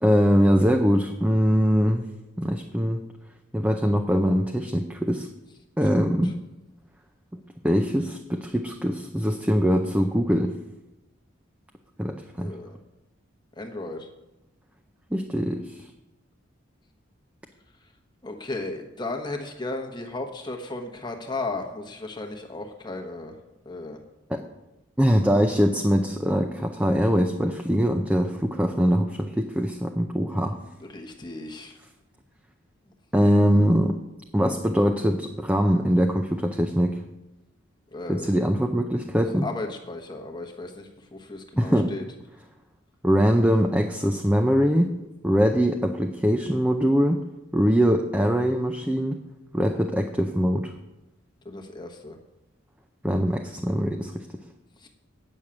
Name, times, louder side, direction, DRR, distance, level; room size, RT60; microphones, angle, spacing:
voice 1, 0.0-2.1 2.4-3.1 3.5-5.3 5.8-6.3 7.6-10.5 12.0-12.6 15.1-15.9 24.3-24.4 25.0-30.6 33.1-34.0 34.3-37.0 38.1-39.5 41.6-41.9 43.0-44.9 45.2-47.2 47.5-49.2 49.5-50.7 53.0-54.3, equal, 5° right, 3 dB, 0.5 m, -22 dB
voice 2, 5.9-6.3 12.4-12.8 13.6-14.1 18.2-23.4 23.6-24.0 30.8-31.8 37.9-38.3 39.4-42.0 51.4-52.2 54.8-54.9, left 2 dB, 20° left, 3 dB, 1.1 m, -35 dB
8.9 x 6.4 x 8.5 m, 0.97 s
head